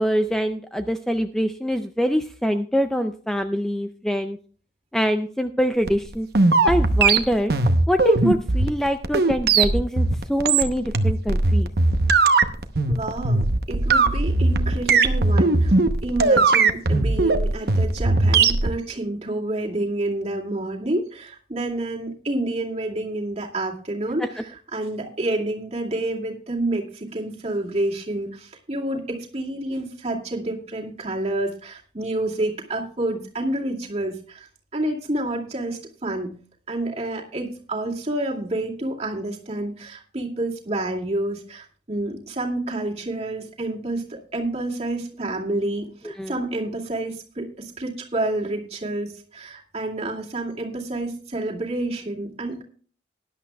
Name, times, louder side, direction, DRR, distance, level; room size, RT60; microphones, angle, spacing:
voice 1, 0.0-4.4 4.9-6.3 6.6-7.5 7.9-11.7 24.2-24.3 46.2-46.3, equal, 5° left, 7 dB, 0.4 m, -24 dB
sound 1, 5.9-18.7, right 3 dB, 60° right, 0.9 m, -19 dB
voice 2, 12.9-15.7 16.0-34.5 34.7-36.3 36.7-52.6, right 1 dB, 35° right, -1 dB, 2.3 m, -29 dB
19.0 x 11.0 x 2.3 m, 0.43 s
head